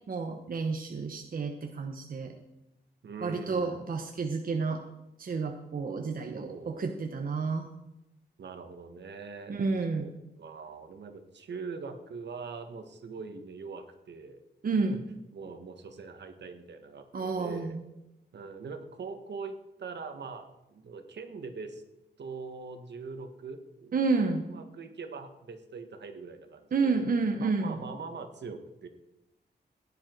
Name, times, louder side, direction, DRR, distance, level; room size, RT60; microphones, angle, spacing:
voice 1, 0.1-2.3 3.2-4.8 5.2-7.7 9.5-10.1 14.6-15.0 17.1-17.8 23.9-24.5 26.7-27.8, right 4 dB, 50° right, 4 dB, 1.1 m, -30 dB
voice 2, 3.0-3.9 6.3-6.9 8.4-9.6 10.0-10.1 10.4-14.4 14.9-15.0 15.3-17.8 18.3-21.8 22.2-23.9 24.5-27.0 27.4-28.9, right 4 dB, 75° right, 7 dB, 1.7 m, -42 dB
16.0 x 10.0 x 4.7 m, 0.93 s
wide cardioid pair, 155°, 18 cm